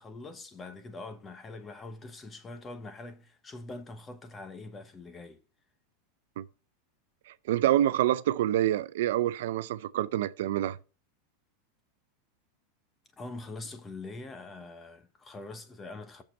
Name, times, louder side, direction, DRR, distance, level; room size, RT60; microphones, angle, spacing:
voice 1, 0.0-5.4 13.2-16.2, left 2 dB, 15° left, 0.9 m, -43 dB
voice 2, 7.5-10.8, right 12 dB, 75° right, 0.5 m, -26 dB
8.6 x 6.7 x 4.3 m
supercardioid pair, 155°, 0 cm